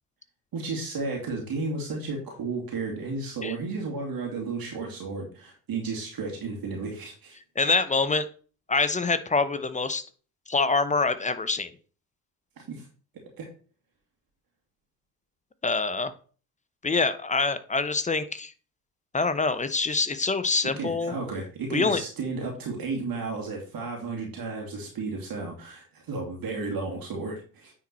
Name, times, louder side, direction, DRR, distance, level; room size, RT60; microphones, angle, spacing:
voice 1, 0.5-7.4 12.7-12.9 13.4-13.5 20.8-27.7, right 3 dB, 45° right, 0 dB, 2.4 m, -33 dB
voice 2, 7.6-8.3 8.7-10.0 10.5-11.7 15.6-16.1 16.8-18.5 19.1-21.1 21.7-22.0, left 3 dB, 15° left, 12 dB, 0.8 m, -25 dB
9.5 x 4.3 x 4.2 m, 0.40 s
hypercardioid pair, 60°, 49 cm